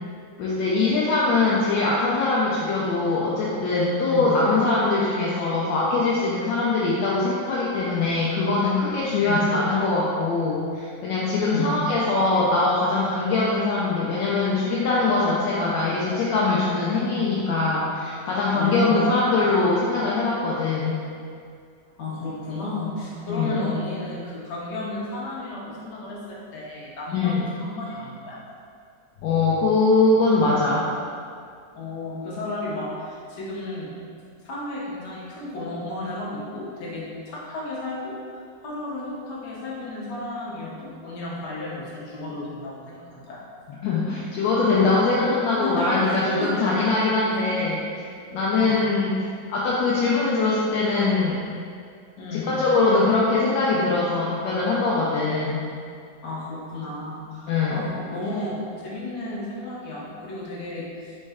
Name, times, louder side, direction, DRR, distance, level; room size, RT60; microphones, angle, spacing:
voice 1, 0.4-21.0 23.3-23.5 27.1-27.5 29.2-30.9 43.8-47.8 48.3-51.4 52.3-55.6 57.5-57.8, left 3 dB, 80° left, -6 dB, 1.3 m, -22 dB
voice 2, 4.1-4.6 9.2-9.6 11.4-12.0 18.5-19.0 22.0-28.4 31.7-34.0 34.4-38.2 38.6-43.4 45.0-45.1 45.6-46.7 47.5-47.6 48.6-48.9 52.2-52.6 56.2-61.1, left 2 dB, 65° left, -6 dB, 1.5 m, -33 dB
4.2 x 3.1 x 3.5 m, 2.3 s
omnidirectional pair, 2.0 m